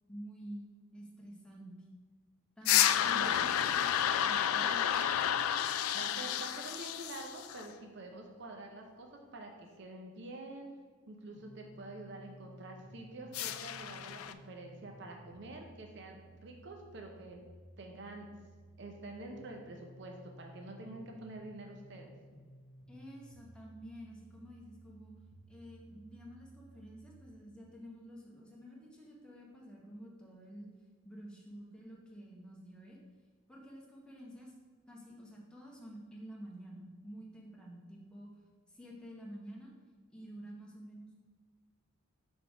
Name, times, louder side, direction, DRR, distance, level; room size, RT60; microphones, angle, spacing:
voice 1, 0.1-1.8 2.6-3.9 4.1-4.9 22.9-25.1 25.5-30.7 31.0-33.0 33.5-34.5 34.9-38.3 38.7-39.7 40.1-41.1, equal, 5° left, -3 dB, 0.9 m, -50 dB
sound 1, 2.6-7.7 13.3-14.3, left 10 dB, 90° left, 0.3 m, -31 dB
voice 2, 3.1-3.4 5.9-10.7 11.1-17.5 17.8-18.3 18.8-22.1, right 2 dB, 55° right, 2 dB, 0.6 m, -47 dB
sound 2, 11.3-27.3, right 1 dB, 70° left, 1.0 m, -56 dB
5.8 x 3.5 x 4.9 m, 1.5 s
head